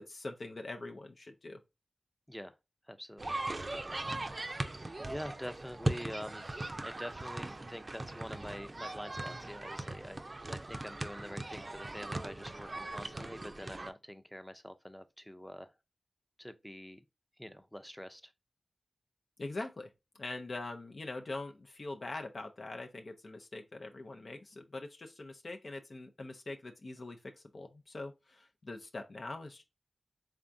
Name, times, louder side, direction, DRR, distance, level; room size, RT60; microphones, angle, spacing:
voice 1, 0.0-1.6 19.4-29.6, left 2 dB, 65° left, 0.5 m, -43 dB
voice 2, 2.9-3.4 4.3-15.7 16.4-17.0 17.4-18.3, equal, 5° left, 0.5 m, -46 dB
sound 1, 3.2-13.9, right 2 dB, 45° right, 0.4 m, -39 dB
3.5 x 3.4 x 2.6 m
cardioid pair, 40°, 0 cm